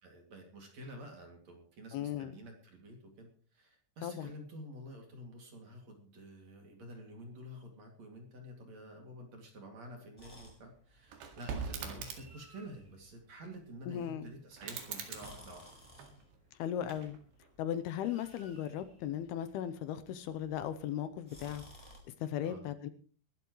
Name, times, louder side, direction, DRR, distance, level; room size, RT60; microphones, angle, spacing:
voice 1, 0.0-15.7 22.4-22.6, equal, 45° right, 2 dB, 3.2 m, -50 dB
voice 2, 1.9-2.3 4.0-4.3 13.9-14.3 16.6-17.2 17.6-21.6 22.2-22.9, left 10 dB, 80° left, 11 dB, 2.6 m, -37 dB
sound 1, 10.2-22.0, equal, 5° left, 3.8 m, -59 dB
sound 2, 11.1-12.5 14.5-16.4 16.8-17.5, right 6 dB, 80° right, 4.1 m, -43 dB
22.5 x 12.0 x 3.1 m, 0.42 s
omnidirectional pair, 4.8 m